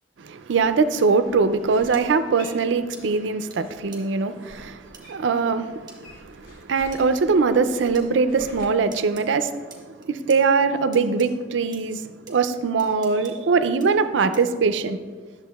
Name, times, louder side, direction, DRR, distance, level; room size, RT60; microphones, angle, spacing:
voice 1, 0.2-9.7 10.1-15.0, right 4 dB, 70° right, 11 dB, 0.4 m, -22 dB
sound 1, 0.9-1.0 1.9-2.0 2.9-3.0 3.5-3.6 3.9-4.0 4.9-5.0 5.9-6.0 6.9-7.0 7.9-8.1 8.9-9.2 9.7-10.4 10.9-11.3 11.7-11.8 12.3-12.4 12.8-13.3 13.8-13.9 14.3-14.6, right 5 dB, 25° right, 1.2 m, -45 dB
sound 2, 1.2-3.3 3.6-5.4 5.7-8.7, equal, 50° left, 1.5 m, -47 dB
11.0 x 6.9 x 2.3 m, 1.4 s
head